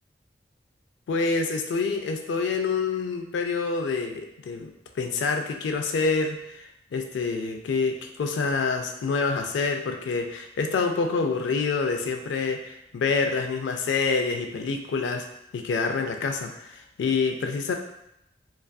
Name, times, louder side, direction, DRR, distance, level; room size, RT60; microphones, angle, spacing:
voice 1, 1.1-15.3 15.5-17.7, left 4 dB, 85° left, 4 dB, 0.3 m, -27 dB
2.4 x 2.4 x 2.2 m, 0.81 s
head